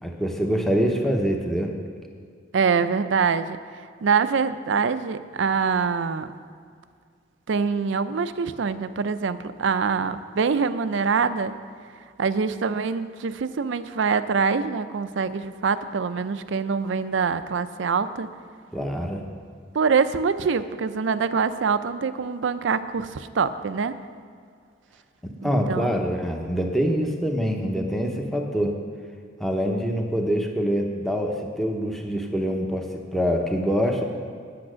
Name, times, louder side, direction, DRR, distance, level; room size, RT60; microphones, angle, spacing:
voice 1, 0.0-1.7 18.7-19.2 25.2-28.8 29.4-34.0, equal, ahead, 2 dB, 0.8 m, -25 dB
voice 2, 2.5-3.6 4.0-6.3 7.5-11.6 12.2-18.3 19.7-23.9 25.4-25.9, right 5 dB, 70° right, 12 dB, 0.4 m, -24 dB
8.7 x 8.6 x 6.3 m, 2.1 s
head